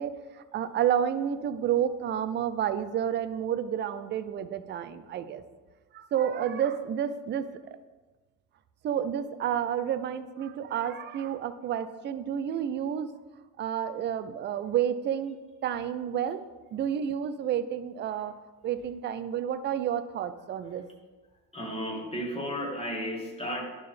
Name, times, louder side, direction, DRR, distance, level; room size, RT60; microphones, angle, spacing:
voice 1, 0.0-5.4 5.9-7.8 8.8-13.1 13.6-16.4 16.7-18.3 18.6-20.8, right 9 dB, 25° right, 11 dB, 0.4 m, -30 dB
voice 2, 21.5-23.6, equal, 10° left, -2 dB, 2.1 m, -34 dB
11.0 x 3.9 x 3.5 m, 1.3 s
figure-of-eight pair, 60°, 48 cm